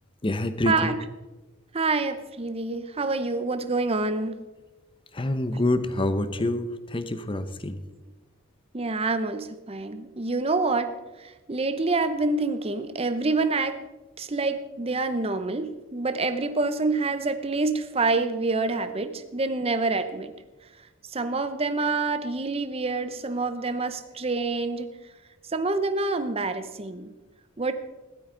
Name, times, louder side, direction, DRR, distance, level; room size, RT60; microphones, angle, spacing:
voice 1, 0.2-1.0 5.1-7.8, left 1 dB, 25° left, 11 dB, 0.7 m, -26 dB
voice 2, 1.7-4.4 8.7-10.9 11.2-13.8 14.2-20.3 21.1-25.0 25.5-27.1 27.6-27.7, right 3 dB, 30° right, 9 dB, 0.7 m, -27 dB
15.5 x 12.5 x 3.9 m, 1.1 s
head